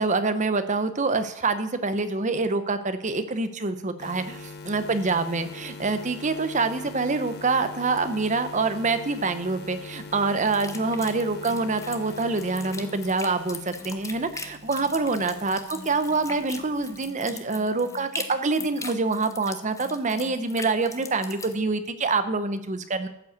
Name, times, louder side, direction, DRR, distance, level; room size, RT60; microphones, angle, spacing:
voice 1, 0.0-23.1, right 3 dB, 35° right, 11 dB, 0.8 m, -26 dB
sound 1, 4.0-17.1, left 3 dB, 45° left, 1.3 m, -43 dB
sound 2, 10.4-21.5, left 3 dB, 15° left, 0.8 m, -40 dB
13.0 x 5.5 x 8.0 m, 0.80 s
head